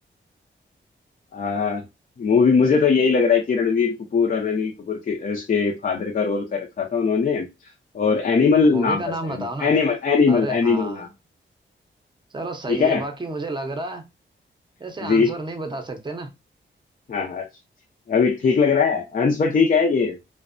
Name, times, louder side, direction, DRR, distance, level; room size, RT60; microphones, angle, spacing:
voice 1, 1.3-1.8 2.2-7.5 7.9-11.1 12.7-13.0 15.0-15.3 17.1-17.5 18.1-20.2, left 5 dB, 45° left, 0.5 m, -20 dB
voice 2, 8.6-9.7 10.3-11.1 12.3-14.0 14.8-16.3, right 2 dB, 25° right, 0.6 m, -31 dB
2.5 x 2.1 x 2.4 m
wide cardioid pair, 90°, 20 cm